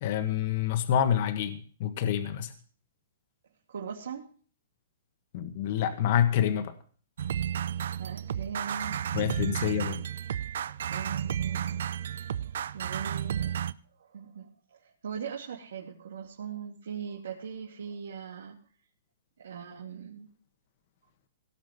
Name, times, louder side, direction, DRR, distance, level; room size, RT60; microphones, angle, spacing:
voice 1, 0.0-2.5 5.3-6.7 9.1-10.0, left 9 dB, 45° left, 9 dB, 1.5 m, -27 dB
voice 2, 3.7-4.3 8.0-9.0 10.9-11.9 12.3-12.4 12.7-13.6 14.0-18.5 19.4-20.3, right 7 dB, 85° right, -2 dB, 2.7 m, -40 dB
sound 1, 7.2-13.7, right 9 dB, 70° right, 0.6 m, -32 dB
17.5 x 6.3 x 7.8 m, 0.42 s
hypercardioid pair, 160°, 0 cm